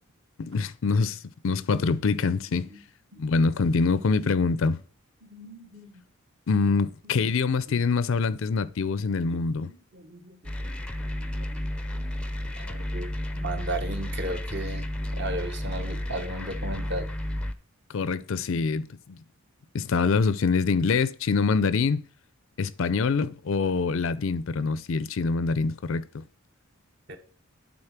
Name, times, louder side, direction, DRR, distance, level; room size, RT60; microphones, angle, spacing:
voice 1, 0.4-2.7 3.2-4.8 6.5-9.7 17.9-19.2 19.7-22.0 22.6-26.2, left 4 dB, 60° left, 0.4 m, -25 dB
voice 2, 5.2-5.9 6.6-6.7 7.0-7.2 7.7-7.8 9.2-9.4 9.7-11.6 11.9-17.1 27.1-27.2, right 1 dB, 50° right, 1.2 m, -37 dB
sound 1, 10.4-17.5, left 1 dB, 5° left, 0.5 m, -32 dB
9.9 x 4.0 x 5.9 m
head